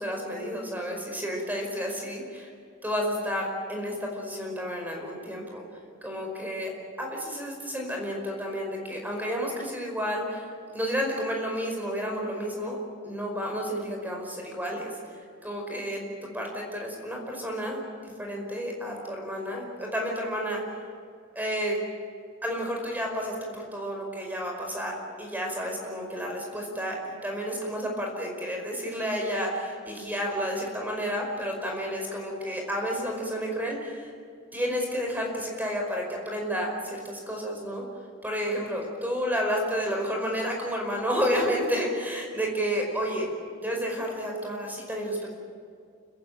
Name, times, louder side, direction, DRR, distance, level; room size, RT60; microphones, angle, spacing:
voice 1, 0.0-2.5 2.8-5.6 6.0-6.7 7.0-12.8 13.0-16.0 16.3-17.8 18.2-20.6 21.3-21.8 22.4-34.1 34.5-37.8 38.2-43.3 43.6-45.3, equal, 10° right, 1 dB, 5.2 m, -31 dB
29.5 x 15.0 x 9.1 m, 2.4 s
head